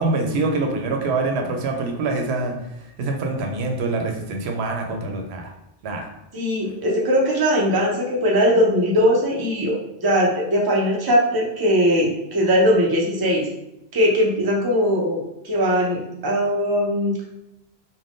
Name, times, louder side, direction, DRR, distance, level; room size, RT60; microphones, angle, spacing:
voice 1, 0.0-5.5 5.8-6.1, right 3 dB, 90° right, 3 dB, 0.8 m, -25 dB
voice 2, 6.3-13.5 13.9-17.1, equal, 30° right, -2 dB, 0.5 m, -20 dB
2.5 x 2.2 x 3.4 m, 0.88 s
omnidirectional pair, 1.1 m